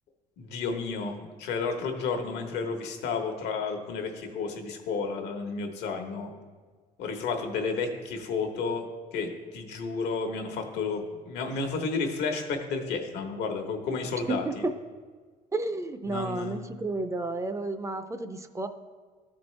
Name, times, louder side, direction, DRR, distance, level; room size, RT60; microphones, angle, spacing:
voice 1, 0.4-6.3 7.0-8.9 9.1-14.5 16.1-16.6, left 4 dB, 85° left, 4 dB, 1.1 m, -32 dB
voice 2, 14.3-14.7 15.5-18.7, right 2 dB, 20° right, 10 dB, 0.4 m, -31 dB
13.0 x 4.4 x 3.2 m, 1.5 s
cardioid pair, 110°, 17 cm